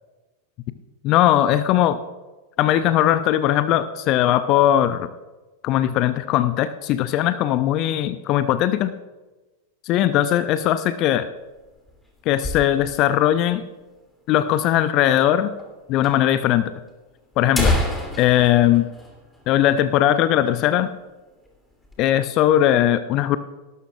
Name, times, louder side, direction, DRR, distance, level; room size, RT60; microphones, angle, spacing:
voice 1, 1.0-2.0 2.6-5.1 5.6-8.9 9.8-11.3 12.3-13.6 14.3-15.5 15.9-16.7 17.4-17.8 18.2-18.9 19.5-20.9 22.0-23.4, left 12 dB, 40° left, 13 dB, 0.5 m, -19 dB
sound 1, 11.4-13.2 13.5-13.6 13.8-13.9 14.6-14.7 15.6-15.7 16.0-16.1 16.9-17.0 17.3-19.9 20.2-20.4 20.8-21.0 21.5-22.0, left 1 dB, 5° left, 2.8 m, -27 dB
19.0 x 12.0 x 2.4 m, 1.2 s
figure-of-eight pair, 90°, 0 cm